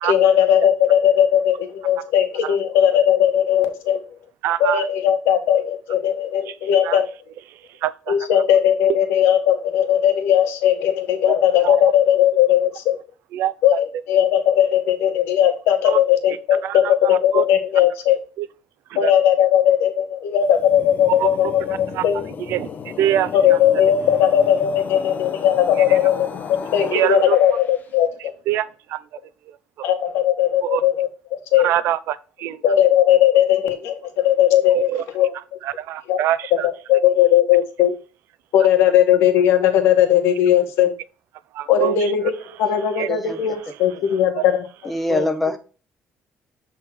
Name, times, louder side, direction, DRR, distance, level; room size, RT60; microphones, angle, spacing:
voice 1, 0.0-4.0 4.6-7.1 8.1-13.0 13.6-18.2 18.9-22.3 23.3-28.3 29.8-31.7 32.6-34.9 35.1-35.3 36.1-36.2 36.5-37.9 38.5-40.9 41.7-44.7 45.1-45.2, left 10 dB, 90° left, 1.2 m, -18 dB
voice 2, 4.4-4.8 6.5-6.6 6.8-7.0 7.8-8.1 11.2-11.3 11.6-11.8 13.3-13.5 15.8-16.0 16.6-17.4 18.4-18.5 18.9-19.1 21.2-21.3 21.9-22.0 22.5-22.7 23.0-23.6 25.9-26.0 26.9-27.4 28.5-29.0 30.6-30.8 31.6-32.6 34.7-35.0 35.6-36.7 41.5-42.1 43.0-43.1, right 12 dB, 75° right, 0.5 m, -24 dB
sound 1, 20.4-27.8, left 6 dB, 45° left, 0.8 m, -34 dB
voice 3, 43.0-43.4 44.0-44.1 44.8-45.6, left 1 dB, 5° left, 0.8 m, -24 dB
7.6 x 3.6 x 4.5 m
cardioid pair, 120°, 4 cm